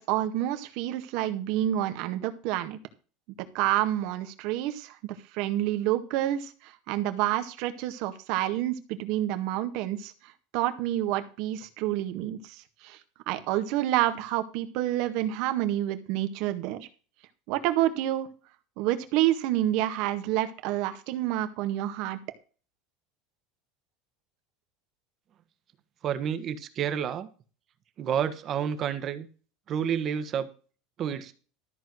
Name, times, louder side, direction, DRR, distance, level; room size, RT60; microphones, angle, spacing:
voice 1, 0.0-2.8 3.5-10.1 10.5-13.0 13.3-16.9 17.5-18.3 18.8-22.2, right 13 dB, 65° right, 8 dB, 1.7 m, -28 dB
voice 2, 26.0-27.3 28.0-29.3 29.7-30.5 31.0-31.3, right 8 dB, 40° right, 10 dB, 1.6 m, -29 dB
13.5 x 4.6 x 7.8 m, 0.37 s
supercardioid pair, 110°, 0 cm